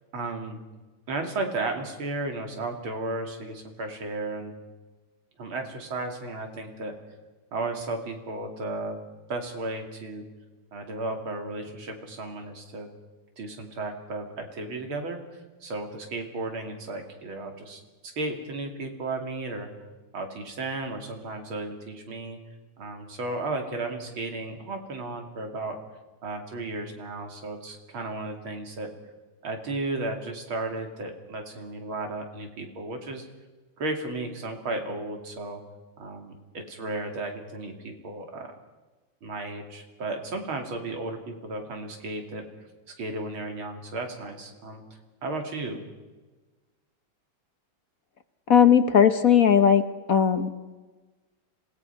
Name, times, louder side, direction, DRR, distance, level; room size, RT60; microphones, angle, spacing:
voice 1, 0.1-0.6 1.1-4.5 5.4-7.0 7.5-9.0 9.3-10.2 10.7-12.9 13.4-19.7 20.1-22.4 22.8-25.8 26.2-28.9 29.4-33.3 33.8-35.6 36.0-38.5 39.2-42.5 42.9-44.8 45.2-45.8, right 2 dB, 85° right, 4 dB, 3.5 m, -34 dB
voice 2, 48.5-49.8 50.1-50.5, left 8 dB, 55° left, 10 dB, 1.2 m, -18 dB
26.0 x 18.0 x 5.8 m, 1.2 s
omnidirectional pair, 2.2 m